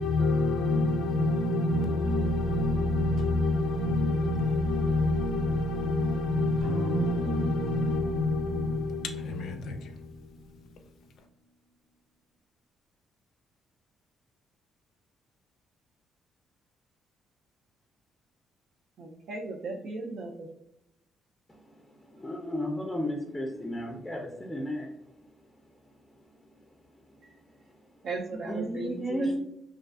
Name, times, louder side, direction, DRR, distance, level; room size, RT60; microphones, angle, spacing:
voice 1, 0.0-10.1, left 2 dB, 75° left, 0.4 m, -27 dB
sound 1, 6.6-10.8, right 3 dB, 90° right, 0.8 m, -37 dB
voice 2, 19.0-20.5 28.0-29.4, right 3 dB, 70° right, 0.3 m, -36 dB
voice 3, 21.5-24.9 25.2-25.3 25.9-26.0 27.8-27.9 28.5-29.4, equal, 10° left, 0.4 m, -34 dB
2.4 x 2.3 x 2.3 m
cardioid pair, 90°, 0 cm